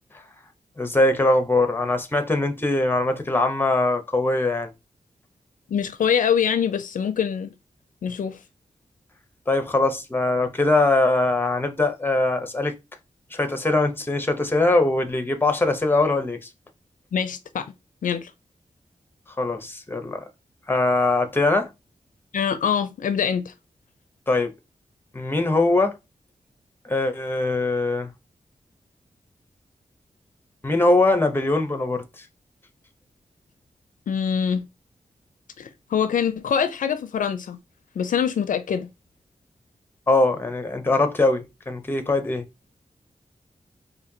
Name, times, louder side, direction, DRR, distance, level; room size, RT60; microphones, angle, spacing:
voice 1, 0.8-4.7 9.5-12.8 13.3-16.5 19.4-20.2 20.7-21.7 24.3-24.5 25.1-26.0 26.8-28.1 30.6-32.2 40.1-42.5, left 2 dB, 15° left, 0.7 m, -22 dB
voice 2, 5.7-7.5 8.0-8.4 17.1-17.7 18.0-18.3 22.3-23.5 34.1-34.7 35.6-37.6 38.0-38.9, left 7 dB, 85° left, 0.4 m, -24 dB
4.2 x 2.6 x 2.7 m
wide cardioid pair, 105°, 13 cm